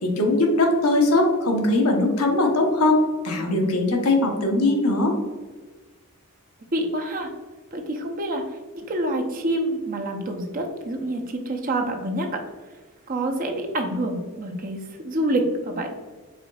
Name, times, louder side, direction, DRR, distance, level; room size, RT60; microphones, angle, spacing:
voice 1, 0.0-5.2, left 2 dB, 90° left, 1 dB, 1.0 m, -20 dB
voice 2, 6.7-7.3 7.7-8.4 8.7-12.4 13.1-15.9, right 1 dB, 40° right, 3 dB, 0.6 m, -27 dB
5.0 x 4.0 x 2.3 m, 1.3 s
head